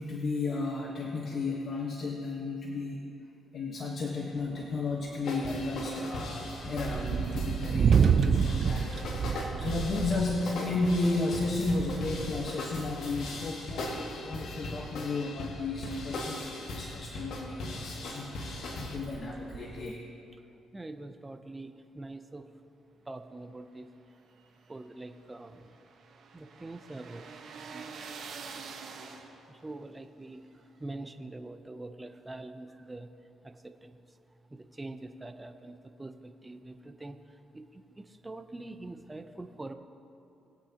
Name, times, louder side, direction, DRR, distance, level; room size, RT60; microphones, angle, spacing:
voice 1, 0.0-3.0 3.5-18.3 18.8-19.9, left 3 dB, 50° left, -1 dB, 1.3 m, -33 dB
sound 1, 4.4-13.0 13.4-17.5 17.8-19.9, right 7 dB, 55° right, 0.5 m, -31 dB
sound 2, 5.2-19.0, left 2 dB, 70° left, 1.9 m, -39 dB
voice 2, 20.7-22.5 23.1-23.9 24.7-25.8 26.3-27.3 27.5-28.5 29.5-33.1 33.4-34.2 34.5-39.7, right 2 dB, 15° right, 8 dB, 0.7 m, -44 dB
sound 3, 24.1-29.6, right 5 dB, 70° right, 1.4 m, -46 dB
21.5 x 8.4 x 2.9 m, 2.7 s
cardioid pair, 90°, 0 cm